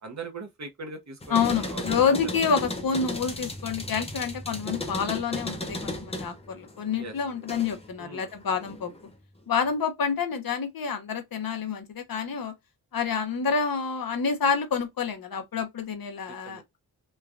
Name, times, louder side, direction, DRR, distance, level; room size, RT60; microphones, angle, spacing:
voice 1, 0.0-2.3 7.0-7.1 8.0-8.3 16.3-16.6, right 3 dB, 45° right, 0.8 m, -40 dB
sound 1, 1.2-7.9 8.3-9.1, left 1 dB, 15° left, 0.6 m, -35 dB
voice 2, 1.3-8.9 9.5-12.5 12.9-16.8, left 6 dB, 60° left, 0.7 m, -28 dB
3.2 x 2.2 x 2.4 m
wide cardioid pair, 135°, 40 cm